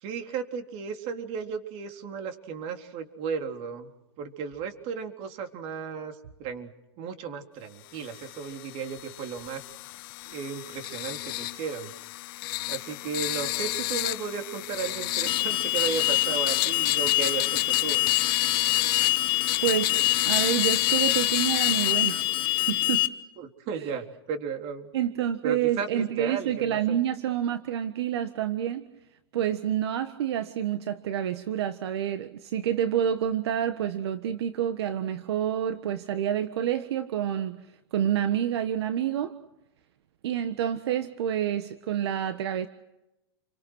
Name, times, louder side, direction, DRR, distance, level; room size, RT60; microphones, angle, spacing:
voice 1, 0.0-3.9 4.2-6.7 7.0-9.6 10.3-11.9 12.7-18.0 23.4-24.9 25.4-27.0, right 6 dB, 45° right, 6 dB, 3.7 m, -34 dB
sound 1, 8.0-22.9, left 20 dB, 55° left, 0.9 m, -31 dB
Alarm, 15.3-23.1, left 16 dB, 35° left, 1.7 m, -25 dB
voice 2, 19.6-23.0 23.8-23.9 24.9-28.9 29.3-37.6 37.9-39.3 40.2-42.7, right 10 dB, 75° right, 11 dB, 1.5 m, -28 dB
30.0 x 25.0 x 6.3 m, 0.92 s
hypercardioid pair, 130°, 14 cm